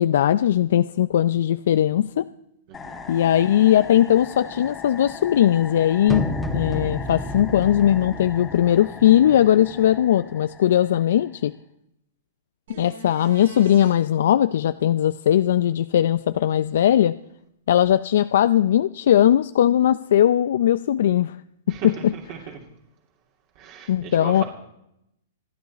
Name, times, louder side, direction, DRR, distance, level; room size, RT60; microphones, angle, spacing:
voice 1, 0.0-2.3 3.1-11.5 12.8-17.2 17.7-21.3 21.7-22.1 23.9-24.4, left 11 dB, 70° left, 13 dB, 0.5 m, -19 dB
sound 1, 2.7-11.6, left 5 dB, 15° left, 1.6 m, -40 dB
voice 2, 2.7-3.0 21.7-22.6 23.6-24.4, right 8 dB, 45° right, -1 dB, 2.8 m, -37 dB
sound 2, 6.1-10.1, left 1 dB, 5° right, 1.6 m, -32 dB
sound 3, 12.7-13.9 17.8-17.9, right 7 dB, 70° right, 7.0 m, -43 dB
27.5 x 9.7 x 4.2 m, 0.80 s
hypercardioid pair, 140°, 0 cm